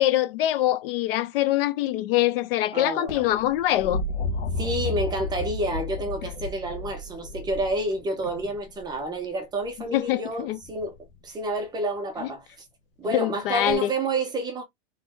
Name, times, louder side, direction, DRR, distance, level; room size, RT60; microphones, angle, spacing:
voice 1, 0.0-4.0 9.9-10.6 13.1-13.9, left 14 dB, 55° left, 0.7 m, -24 dB
voice 2, 2.7-3.2 4.6-11.0 11.2-12.5 13.0-14.6, right 2 dB, 10° right, 0.8 m, -29 dB
sound 1, 3.1-9.0 10.6-11.1 13.7-13.8, left 2 dB, 75° left, 1.4 m, -32 dB
4.4 x 3.2 x 3.5 m
supercardioid pair, 170°, 35 cm